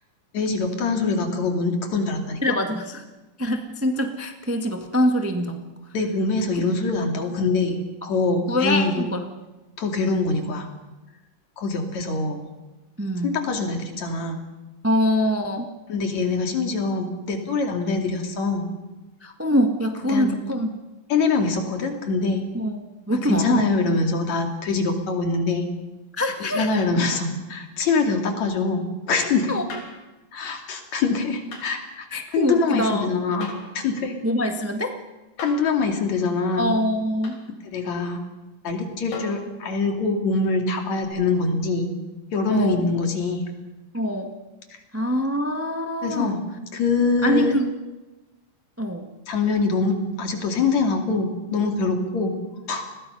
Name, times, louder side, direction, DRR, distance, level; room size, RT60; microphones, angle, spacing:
voice 1, 0.3-2.4 5.9-7.8 8.0-9.1 9.8-10.7 11.6-12.4 13.2-14.4 15.9-18.7 20.1-20.4 21.1-22.4 23.1-25.7 26.5-29.5 30.3-34.1 35.4-36.7 37.6-38.2 38.6-41.9 42.3-43.4 46.0-46.4 46.7-47.5 49.3-52.4 52.7-52.9, left 3 dB, 65° left, 3 dB, 3.8 m, -24 dB
voice 2, 2.4-3.0 3.4-5.6 8.5-9.2 13.0-13.4 14.8-15.7 19.2-20.7 22.5-22.8 23.1-23.7 26.1-26.8 29.5-29.6 32.1-33.1 34.2-34.9 36.6-37.4 42.5-42.8 43.9-44.3 44.9-46.4 47.2-47.6 48.8-49.1, equal, 15° right, 4 dB, 0.5 m, -24 dB
sound 1, 29.7-30.0 31.5-31.7 33.4-33.8 35.4-35.7 37.2-37.4 39.1-39.5 41.0-41.1, left 3 dB, 85° left, 5.0 m, -37 dB
30.0 x 21.0 x 5.6 m, 1.1 s
omnidirectional pair, 3.4 m